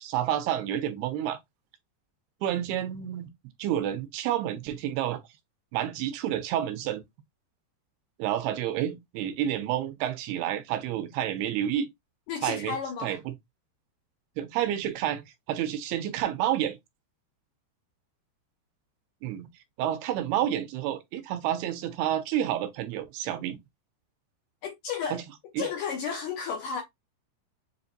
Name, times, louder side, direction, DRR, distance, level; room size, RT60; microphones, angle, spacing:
voice 1, 0.0-1.4 2.4-3.3 3.6-5.2 5.7-7.0 8.2-11.9 12.4-12.8 13.0-13.3 14.4-15.2 15.5-16.8 19.2-19.5 19.8-23.6 25.1-25.2 25.5-25.7, right 11 dB, 85° right, 2.7 m, -29 dB
voice 2, 12.3-13.2 24.6-25.2 25.6-26.8, left 6 dB, 80° left, 1.9 m, -32 dB
7.5 x 2.5 x 2.6 m
omnidirectional pair, 4.6 m